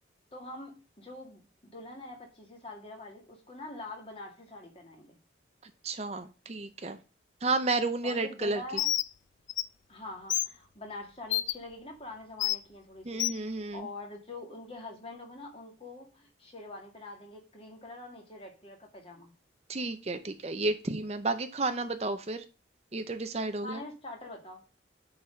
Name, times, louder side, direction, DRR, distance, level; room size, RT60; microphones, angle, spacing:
voice 1, 0.3-5.2 8.0-8.9 9.9-13.2 13.7-19.3 23.6-24.6, left 2 dB, 30° left, 1 dB, 2.1 m, -44 dB
voice 2, 5.6-7.0 7.4-8.6 13.0-13.9 19.7-22.4 22.9-23.8, right 3 dB, 35° right, 9 dB, 0.6 m, -32 dB
Bird, 8.8-9.1 9.5-9.6 10.3-10.5 11.3-11.5 12.4-12.6 13.2-13.4, left 14 dB, 80° left, 0.5 m, -28 dB
8.8 x 4.1 x 5.1 m, 0.33 s
head